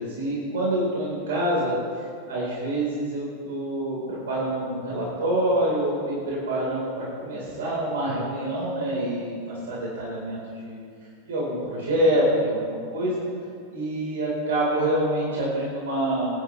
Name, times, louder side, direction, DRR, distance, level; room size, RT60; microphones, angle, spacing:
voice 1, 0.0-1.7 2.3-10.8 11.2-13.2 13.7-16.3, right 1 dB, 60° right, -5 dB, 4.2 m, -26 dB
24.5 x 11.0 x 3.3 m, 2.3 s
figure-of-eight pair, 90°, 0 cm